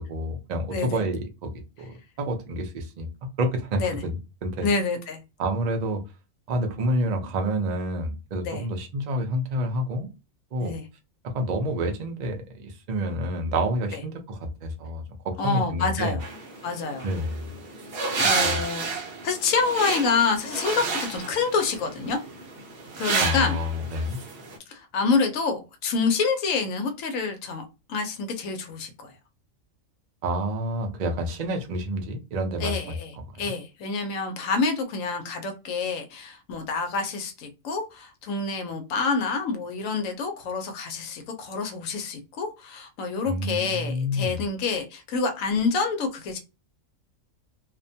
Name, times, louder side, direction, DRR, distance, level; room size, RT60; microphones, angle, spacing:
voice 1, 0.0-4.7 5.4-6.0 6.5-10.1 10.5-10.8 11.2-16.2 17.0-17.5 18.2-18.6 23.2-24.2 30.2-32.9 33.4-33.5 43.2-44.4, equal, 80° right, 0.3 m, -29 dB
voice 2, 0.7-1.0 3.8-4.0 4.6-5.2 8.4-8.6 10.6-10.8 15.4-16.2 16.6-17.1 18.1-18.9 19.2-22.2 23.0-23.6 24.7-27.6 27.9-29.1 32.6-33.1 33.4-46.4, left 4 dB, 75° left, 1.0 m, -27 dB
sound 1, 16.2-24.6, right 4 dB, 55° right, 0.8 m, -30 dB
2.5 x 2.1 x 2.6 m
omnidirectional pair, 1.4 m